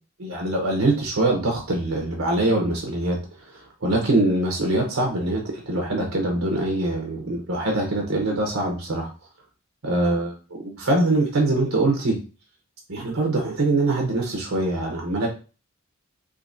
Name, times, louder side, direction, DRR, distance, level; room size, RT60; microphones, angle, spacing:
voice 1, 0.2-3.2 3.5-9.1 9.8-12.2 12.9-15.3, right 2 dB, 80° right, 0 dB, 0.9 m, -23 dB
3.8 x 2.8 x 2.6 m, 0.34 s
head